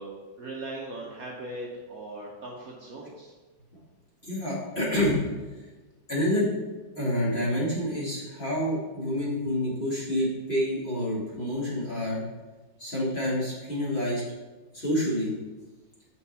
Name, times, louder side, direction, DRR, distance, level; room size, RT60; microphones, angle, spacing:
voice 1, 0.0-3.3, right 2 dB, 55° right, -3 dB, 1.2 m, -39 dB
voice 2, 4.3-5.2 6.1-6.5 7.0-12.2 12.8-14.2 14.7-15.3, left 1 dB, 30° left, -8 dB, 2.3 m, -28 dB
5.8 x 4.6 x 5.7 m, 1.3 s
omnidirectional pair, 2.1 m